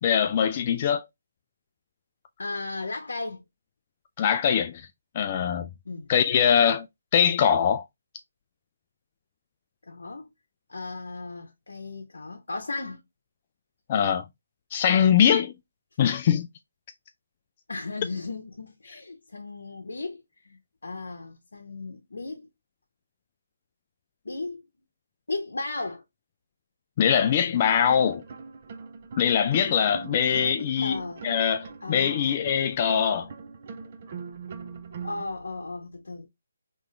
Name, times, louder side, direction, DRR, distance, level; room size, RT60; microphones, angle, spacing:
voice 1, 0.0-1.1 4.2-4.9 5.1-5.7 6.1-6.9 7.1-7.8 13.9-14.2 14.7-15.5 16.0-16.5 27.0-28.2 29.2-33.3, left 8 dB, 35° left, 0.3 m, -22 dB
voice 2, 2.4-3.4 5.9-6.1 9.9-10.3 10.7-13.0 17.7-22.5 24.2-24.6 25.3-26.0 30.3-31.2 31.8-32.4 34.6-34.8 35.0-36.3, left 3 dB, 75° left, 0.8 m, -36 dB
sound 1, 27.6-35.2, right 5 dB, 40° right, 0.6 m, -41 dB
3.6 x 3.0 x 3.3 m
figure-of-eight pair, 150°, 0 cm